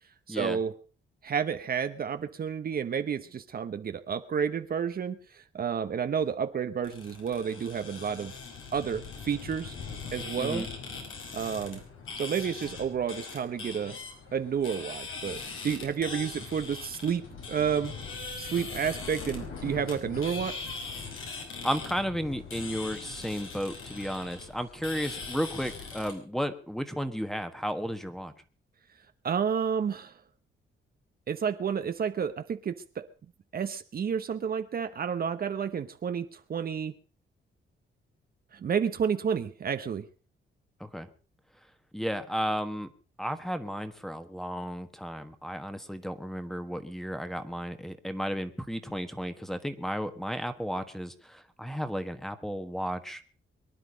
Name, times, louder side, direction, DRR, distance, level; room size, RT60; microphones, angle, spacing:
voice 1, 0.3-0.7 1.2-8.3 8.7-9.8 10.1-10.6 11.3-11.8 12.2-14.0 14.3-17.9 18.4-20.7 29.2-30.2 31.3-33.1 33.5-36.9 38.5-40.1, right 7 dB, 50° right, 10 dB, 0.9 m, -30 dB
sound 1, 6.8-26.1, left 4 dB, 85° left, 5.2 m, -41 dB
voice 2, 10.4-10.7 21.6-28.3 40.8-41.1 41.9-42.9 43.2-53.2, equal, ahead, 10 dB, 1.4 m, -33 dB
23.5 x 10.5 x 5.1 m, 0.39 s
cardioid pair, 130°, 20 cm